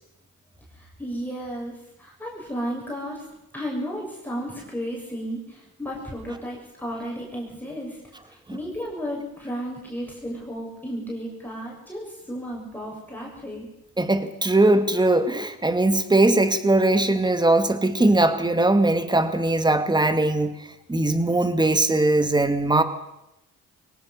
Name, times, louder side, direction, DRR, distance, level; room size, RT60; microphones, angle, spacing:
voice 1, 0.7-3.2 3.5-13.7, equal, 5° left, -3 dB, 6.8 m, -33 dB
voice 2, 14.0-20.5 20.9-22.8, right 2 dB, 15° right, 10 dB, 2.2 m, -20 dB
22.5 x 18.5 x 6.7 m, 0.89 s
cardioid pair, 90°, 30 cm